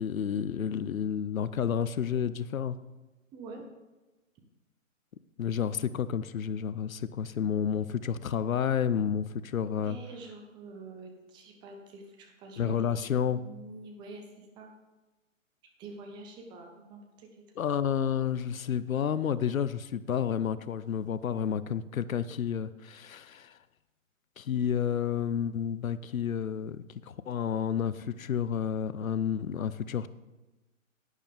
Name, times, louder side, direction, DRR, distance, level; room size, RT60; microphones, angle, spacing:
voice 1, 0.0-2.8 5.4-10.0 12.6-13.4 17.6-23.6 24.4-30.1, left 8 dB, 80° left, 16 dB, 0.6 m, -30 dB
voice 2, 3.3-3.7 9.6-12.9 13.3-14.7 15.8-17.4, right 3 dB, 10° right, 3 dB, 0.7 m, -46 dB
11.5 x 9.2 x 3.4 m, 1.1 s
figure-of-eight pair, 135°, 40 cm